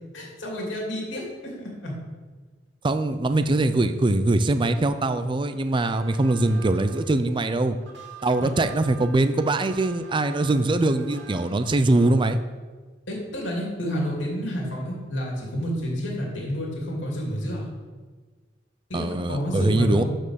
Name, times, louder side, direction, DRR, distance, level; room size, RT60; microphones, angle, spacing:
voice 1, 0.1-1.9 8.4-8.5 13.1-17.7 18.9-20.0, equal, 80° left, -2 dB, 2.7 m, -30 dB
voice 2, 2.8-7.8 8.2-12.4 18.9-20.0, right 2 dB, 25° right, 10 dB, 0.5 m, -22 dB
sound 1, 5.7-12.3, right 6 dB, 65° right, 2.0 m, -47 dB
11.0 x 4.4 x 6.5 m, 1.4 s
head